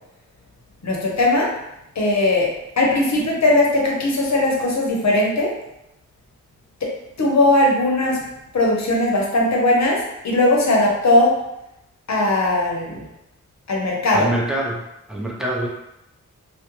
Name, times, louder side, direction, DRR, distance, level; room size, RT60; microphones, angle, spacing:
voice 1, 0.8-1.5 2.0-2.5 2.8-5.5 7.2-8.2 8.5-11.3 12.1-13.1 13.7-14.3, left 2 dB, 60° left, -2 dB, 0.7 m, -18 dB
voice 2, 14.1-15.7, right 1 dB, ahead, -4 dB, 0.7 m, -25 dB
2.3 x 2.1 x 3.0 m, 0.87 s
cardioid pair, 55°, 32 cm